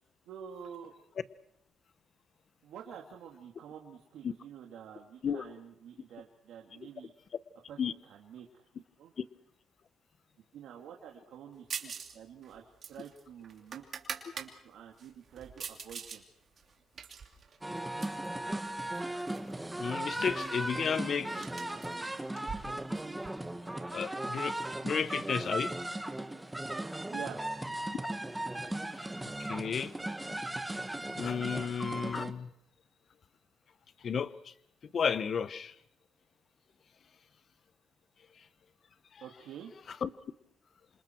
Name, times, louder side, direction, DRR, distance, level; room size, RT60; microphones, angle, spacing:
voice 1, 0.3-0.9 2.6-7.1 7.7-8.7 9.0-9.1 10.5-13.8 14.3-16.2 27.1-27.4 39.2-39.7, right 8 dB, 80° right, 0 dB, 2.5 m, -48 dB
sound 1, 11.7-12.2 12.4-14.5 15.0-16.2 16.6-18.3 18.9-19.5 19.8-19.9 20.2-23.3, right 6 dB, 50° right, 3.0 m, -44 dB
sound 2, 17.6-32.3, right 1 dB, 10° right, 1.5 m, -37 dB
voice 2, 19.8-21.5 23.9-24.6 24.8-25.7 29.4-29.9 31.2-32.5 34.0-34.5 34.9-35.7 39.1-39.2 40.0-40.1, left 7 dB, 50° left, 14 dB, 1.0 m, -33 dB
28.0 x 27.0 x 4.6 m, 0.73 s
cardioid pair, 90°, 0 cm